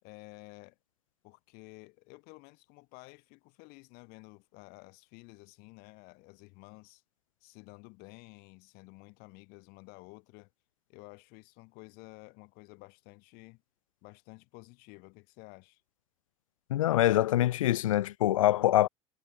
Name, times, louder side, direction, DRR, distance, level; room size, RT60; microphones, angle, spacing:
voice 1, 0.0-0.8 1.2-7.0 7.4-10.5 10.9-13.6 14.0-15.8, left 28 dB, 65° left, 6.6 m, -52 dB
voice 2, 16.7-18.9, left 14 dB, 85° left, 1.3 m, -24 dB
hypercardioid pair, 75°, 17 cm